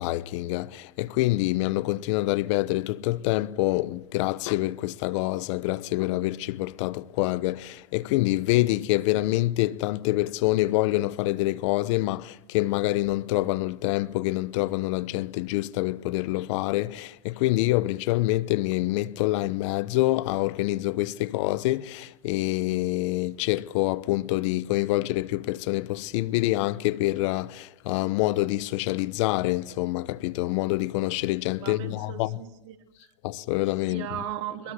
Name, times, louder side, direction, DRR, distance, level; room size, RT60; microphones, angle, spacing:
voice 1, 0.0-32.4 33.2-34.1, left 18 dB, 70° left, 1.0 m, -26 dB
voice 2, 31.6-32.8 33.9-34.7, right 10 dB, 70° right, 3.5 m, -36 dB
23.0 x 22.0 x 8.3 m
hypercardioid pair, 100°, 16 cm